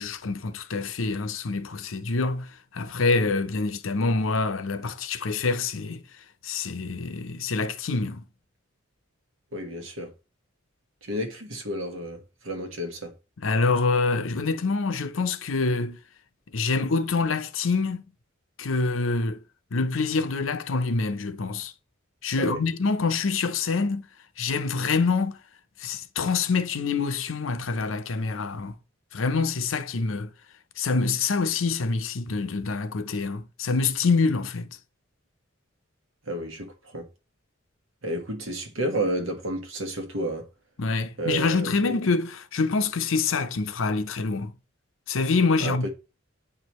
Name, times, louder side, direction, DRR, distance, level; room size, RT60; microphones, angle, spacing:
voice 1, 0.0-6.0 6.4-8.2 13.4-16.0 16.5-18.1 18.6-19.4 19.7-21.7 22.2-24.1 24.4-25.4 25.8-28.8 29.1-30.3 30.8-34.8 40.8-44.5 45.1-45.9, left 4 dB, 80° left, 0.7 m, -26 dB
voice 2, 9.5-10.1 11.0-13.1 22.4-22.6 36.3-37.1 38.0-40.5 41.2-41.7 45.6-45.9, right 1 dB, 80° right, 1.4 m, -31 dB
8.7 x 4.9 x 3.1 m
head